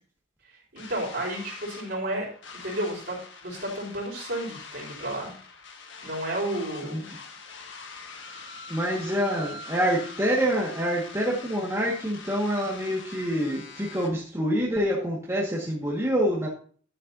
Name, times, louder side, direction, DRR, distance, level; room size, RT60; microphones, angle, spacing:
voice 1, 0.7-5.3 6.0-7.1, right 1 dB, 55° right, -1 dB, 4.3 m, -32 dB
sound 1, 0.8-14.1, left 4 dB, 65° left, 1.6 m, -44 dB
voice 2, 8.7-16.5, equal, 15° right, -4 dB, 1.7 m, -26 dB
11.0 x 8.9 x 2.7 m, 0.44 s
head